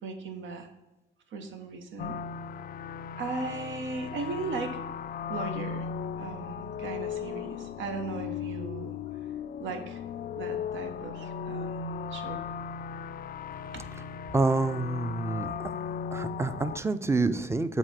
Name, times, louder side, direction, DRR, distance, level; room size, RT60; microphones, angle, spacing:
voice 1, 0.0-0.7 1.3-2.2 3.2-4.9 5.3-5.9 6.2-9.0 9.6-10.0 10.4-12.4 13.7-13.8, right 3 dB, 75° right, 6 dB, 1.2 m, -37 dB
sound 1, 2.0-16.8, left 7 dB, 45° left, 0.4 m, -37 dB
voice 2, 14.3-15.7 16.1-17.8, right 3 dB, 15° right, 12 dB, 0.5 m, -27 dB
7.9 x 4.1 x 6.5 m, 1.0 s
cardioid pair, 90°, 20 cm